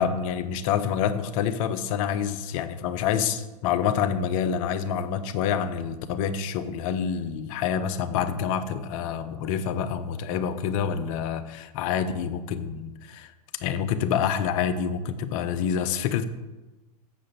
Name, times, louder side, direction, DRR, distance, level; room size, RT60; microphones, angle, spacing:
voice 1, 0.0-13.3 13.6-16.2, left 8 dB, 55° left, 10 dB, 0.9 m, -27 dB
7.4 x 6.9 x 6.9 m, 1.1 s
hypercardioid pair, 100°, 20 cm